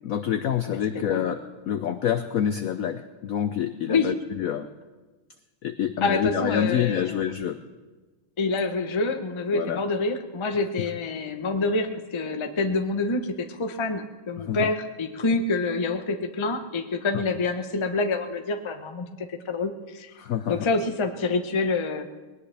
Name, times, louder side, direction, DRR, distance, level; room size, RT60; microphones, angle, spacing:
voice 1, 0.0-4.7 5.6-7.6 9.5-9.8 14.4-14.7 17.1-17.2 20.2-20.7, left 9 dB, 80° left, 9 dB, 0.7 m, -27 dB
voice 2, 0.7-1.2 3.9-4.1 6.0-7.2 8.4-20.1 20.5-22.1, left 3 dB, 40° left, 6 dB, 0.4 m, -27 dB
20.5 x 18.5 x 3.4 m, 1.3 s
omnidirectional pair, 2.2 m